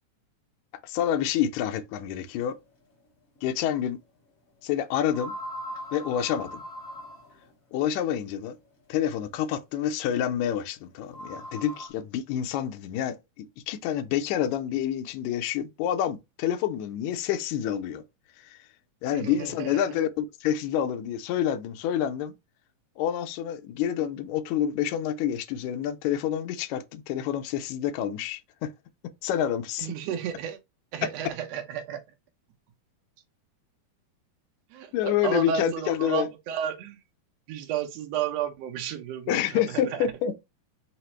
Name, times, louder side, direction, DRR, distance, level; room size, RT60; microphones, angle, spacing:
voice 1, 0.8-2.6 3.4-4.0 4.6-5.3 5.9-6.6 7.7-8.6 8.9-18.0 18.4-18.6 19.0-22.3 23.0-28.7 29.2-29.9 34.9-36.3 39.3-40.4, left 10 dB, 80° left, 1.8 m, -28 dB
sound 1, 3.4-3.5 5.1-7.5 9.3-9.4 11.0-11.9, equal, 45° left, 1.0 m, -39 dB
voice 2, 19.1-19.9 29.8-30.6 30.9-32.0 34.7-37.0 37.5-40.0, right 8 dB, 75° right, 1.6 m, -32 dB
4.9 x 2.0 x 4.3 m
omnidirectional pair, 3.6 m